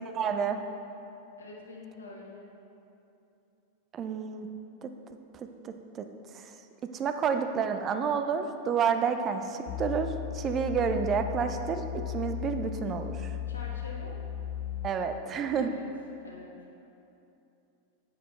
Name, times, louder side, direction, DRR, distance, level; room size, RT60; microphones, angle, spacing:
voice 1, 0.1-0.6 3.9-4.5 4.8-4.9 5.3-6.0 6.9-13.3 14.8-15.7, right 6 dB, 30° right, 7 dB, 0.5 m, -30 dB
voice 2, 1.4-2.5 13.5-14.2 15.5-15.9 16.2-16.5 16.8-16.9, left 2 dB, 75° left, -2 dB, 1.5 m, -46 dB
sound 1, 9.7-14.9, left 10 dB, 40° left, 0.5 m, -36 dB
10.0 x 8.7 x 3.3 m, 2.8 s
figure-of-eight pair, 90°, 0 cm